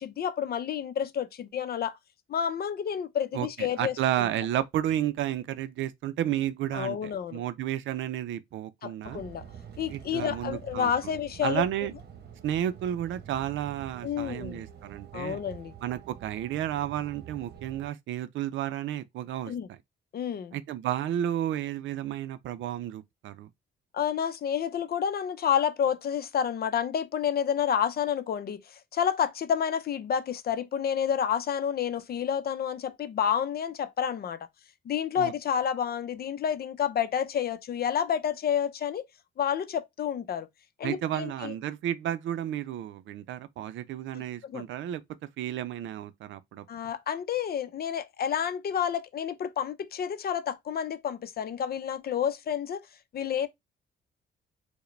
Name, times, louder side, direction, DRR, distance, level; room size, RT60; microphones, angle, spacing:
voice 1, 0.0-2.0 2.3-4.3 6.7-7.4 8.8-9.5 9.8-11.6 14.0-14.6 15.1-15.7 19.5-19.7 20.1-20.6 23.9-34.5 34.8-39.0 39.4-40.5 40.8-41.5 44.1-44.6 46.7-52.9 53.1-53.5, left 8 dB, 50° left, 0.6 m, -29 dB
voice 2, 3.3-9.2 9.9-11.1 11.4-11.9 12.4-15.4 15.8-19.8 20.5-23.5 35.2-35.3 40.8-45.0 45.4-46.6, right 11 dB, 75° right, 0.5 m, -32 dB
sound 1, 9.0-17.9, right 8 dB, 55° right, 0.9 m, -47 dB
4.7 x 2.2 x 3.2 m
cardioid pair, 90°, 20 cm